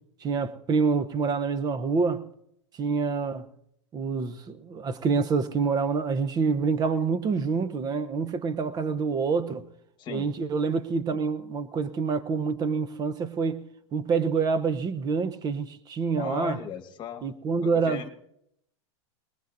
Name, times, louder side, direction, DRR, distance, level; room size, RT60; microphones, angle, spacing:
voice 1, 0.2-2.3 2.7-3.5 3.9-9.7 10.1-13.6 13.9-16.6 17.2-18.0, right 5 dB, 25° right, 0.8 m, -27 dB
voice 2, 16.2-17.2 17.6-18.1, left 9 dB, 30° left, 1.4 m, -37 dB
20.5 x 20.5 x 2.7 m
hypercardioid pair, 120°, 15 cm